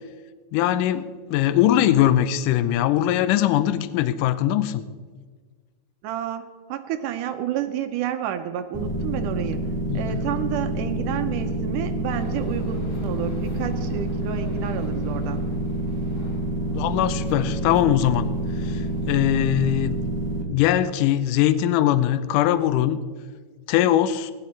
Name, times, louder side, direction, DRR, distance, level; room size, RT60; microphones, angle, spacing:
voice 1, 0.5-1.0 1.3-4.9 9.9-10.2 16.7-18.3 18.6-20.0 20.5-23.0 23.7-24.3, left 12 dB, 80° left, 13 dB, 2.0 m, -21 dB
voice 2, 6.0-9.6 9.9-15.4, right 10 dB, 75° right, 8 dB, 2.1 m, -30 dB
sound 1, 8.7-20.4, right 1 dB, 10° left, 1.5 m, -27 dB
sound 2, 12.1-19.2, left 1 dB, 35° left, 1.4 m, -42 dB
16.5 x 11.0 x 4.3 m, 1.5 s
omnidirectional pair, 4.0 m